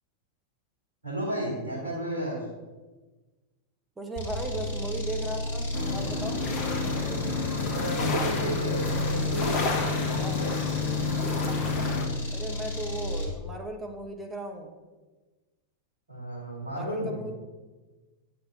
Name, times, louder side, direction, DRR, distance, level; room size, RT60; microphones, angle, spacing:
voice 1, 1.0-2.4 7.3-10.5 16.1-17.2, equal, 75° right, -5 dB, 2.8 m, -33 dB
voice 2, 4.0-6.4 10.2-10.4 12.3-14.7 16.7-17.4, right 1 dB, 10° right, 2 dB, 1.2 m, -37 dB
sound 1, 4.2-13.4, left 1 dB, 55° left, 1.7 m, -33 dB
sound 2, 5.7-12.1, left 4 dB, 35° left, 1.2 m, -29 dB
8.5 x 5.8 x 4.1 m, 1.2 s
figure-of-eight pair, 90°, 0 cm